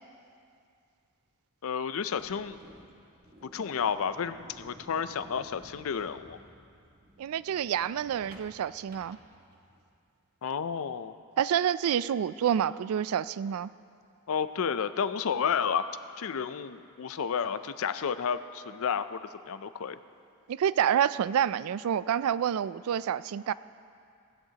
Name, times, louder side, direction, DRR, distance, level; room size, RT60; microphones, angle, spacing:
voice 1, 1.6-2.6 3.5-6.4 10.4-11.1 14.3-15.9 16.2-19.2 19.5-20.0, left 7 dB, 65° left, 12 dB, 0.5 m, -31 dB
sound 1, 2.0-9.8, equal, 40° right, 1.4 m, -54 dB
voice 2, 7.2-9.2 11.4-13.7 20.5-23.5, right 9 dB, 70° right, 17 dB, 0.3 m, -28 dB
16.5 x 16.0 x 2.9 m, 2.4 s
head